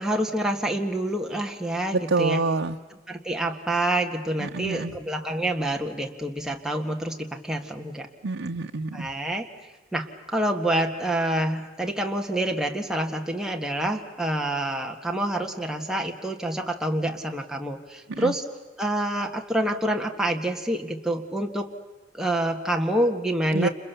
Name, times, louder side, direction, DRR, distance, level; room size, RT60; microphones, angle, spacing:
voice 1, 0.0-2.4 3.1-8.1 8.9-9.5 9.9-18.4 18.8-21.7 22.1-23.7, right 1 dB, 5° right, 2 dB, 1.7 m, -27 dB
voice 2, 1.9-2.8 4.4-4.9 8.2-9.1 18.1-18.3 23.5-23.7, right 3 dB, 90° right, 2 dB, 0.8 m, -26 dB
30.0 x 28.0 x 7.0 m, 1.2 s
head